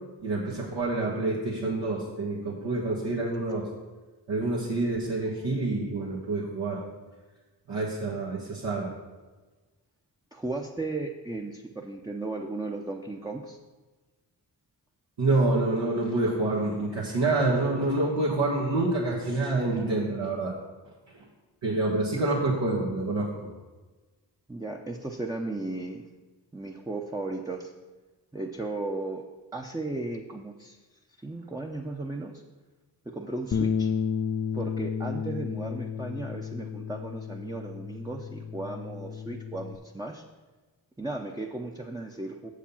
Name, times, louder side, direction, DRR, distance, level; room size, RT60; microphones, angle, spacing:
voice 1, 0.2-3.7 4.3-6.8 7.7-8.9 15.2-20.5 21.6-23.3, right 2 dB, 80° right, -6 dB, 1.5 m, -27 dB
voice 2, 10.3-13.6 24.5-26.0 26.5-27.7 28.3-29.2 29.5-30.8 31.2-32.3 33.1-33.9 34.5-40.2 41.0-42.5, right 2 dB, 10° right, 0 dB, 0.7 m, -35 dB
Bass guitar, 33.5-39.8, left 7 dB, 35° left, 0.4 m, -32 dB
6.9 x 4.9 x 7.1 m, 1.3 s
cardioid pair, 45°, 42 cm